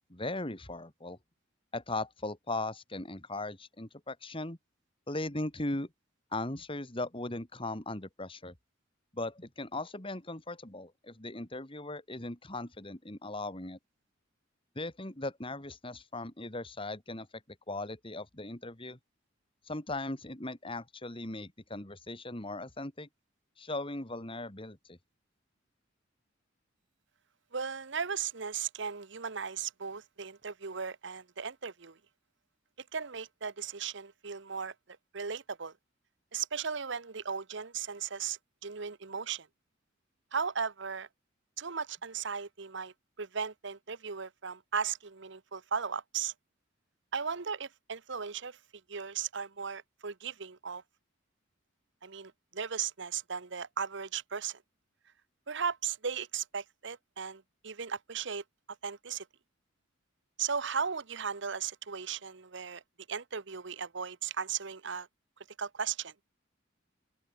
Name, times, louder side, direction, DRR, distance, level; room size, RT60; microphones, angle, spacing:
voice 1, 0.1-1.2 1.7-4.6 5.1-5.9 6.3-8.5 9.1-13.8 14.7-17.3 17.7-19.0 19.7-23.1 23.6-25.0, left 2 dB, 25° left, 2.7 m, -38 dB
voice 2, 27.5-32.0 32.9-35.7 36.3-39.5 40.3-41.1 41.6-46.3 47.1-48.6 48.9-50.8 52.0-54.6 55.5-58.4 58.8-59.3 60.4-62.8 63.1-65.1 65.6-66.1, right 6 dB, 65° right, 1.0 m, -36 dB
open air
head